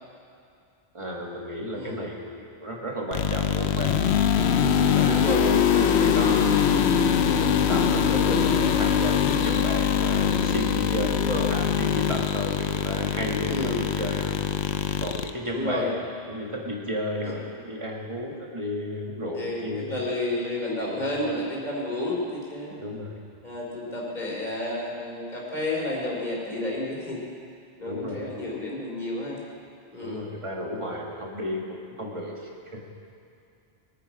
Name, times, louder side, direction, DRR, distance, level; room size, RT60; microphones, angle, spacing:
voice 1, 0.9-3.9 4.6-5.4 5.8-6.7 7.3-14.4 15.0-20.1 20.9-21.0 22.8-23.1 27.8-28.2 30.0-32.9, equal, 30° right, -2 dB, 2.0 m, -33 dB
sound 1, 3.1-15.3, left 8 dB, 85° left, 1.0 m, -23 dB
voice 2, 5.1-6.6 8.1-8.4 11.1-11.5 13.4-13.9 15.5-15.9 17.2-17.3 19.3-22.8 23.4-27.2 27.8-29.4 29.9-30.2, left 1 dB, 45° left, -4 dB, 3.6 m, -31 dB
22.0 x 10.0 x 4.9 m, 2.5 s
omnidirectional pair, 1.1 m